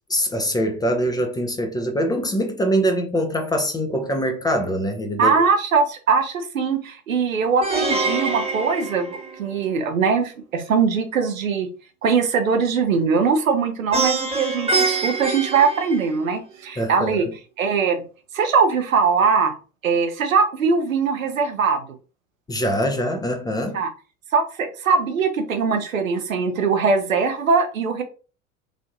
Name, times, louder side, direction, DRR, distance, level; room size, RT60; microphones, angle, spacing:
voice 1, 0.1-5.4 16.8-17.3 22.5-23.8, equal, 10° left, 0.5 m, -23 dB
voice 2, 5.2-11.7 12.0-17.3 17.6-18.0 18.3-19.5 19.8-21.9 23.7-23.9 24.3-28.0, right 5 dB, 85° right, 0.7 m, -21 dB
Plucked string instrument, 7.6-9.8 13.9-16.5, right 3 dB, 15° right, 1.1 m, -25 dB
3.3 x 2.5 x 2.5 m
figure-of-eight pair, 75°, 40 cm